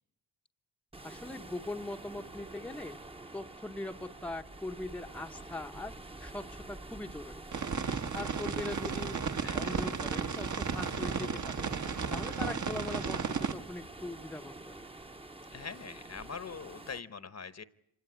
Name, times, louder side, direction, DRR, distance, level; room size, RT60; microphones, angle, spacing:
sound 1, 0.9-17.0, right 2 dB, 15° right, 1.0 m, -48 dB
voice 1, 1.0-3.0 3.3-7.4 8.1-9.2 9.5-11.6 12.1-14.8, left 2 dB, 5° left, 4 dB, 0.9 m, -41 dB
sound 2, 7.5-13.5, right 6 dB, 50° right, 1.4 m, -34 dB
voice 2, 9.4-9.8 15.5-17.6, left 5 dB, 40° left, 15 dB, 1.1 m, -43 dB
26.0 x 17.0 x 9.8 m, 0.78 s
wide cardioid pair, 105°, 39 cm